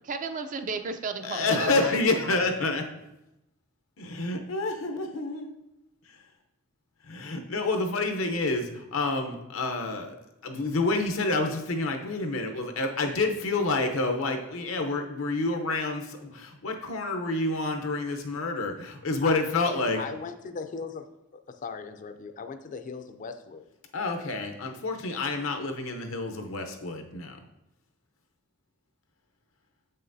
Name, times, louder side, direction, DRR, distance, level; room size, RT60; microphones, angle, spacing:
voice 1, 0.0-2.3, right 4 dB, 40° right, 8 dB, 0.4 m, -34 dB
voice 2, 1.2-2.9 4.0-5.5 7.0-10.2 10.4-20.0 23.9-27.4, left 3 dB, 80° left, 5 dB, 0.7 m, -28 dB
voice 3, 20.0-21.1 21.3-23.7, left 5 dB, 40° left, 9 dB, 0.4 m, -38 dB
7.4 x 5.6 x 2.6 m, 0.90 s
head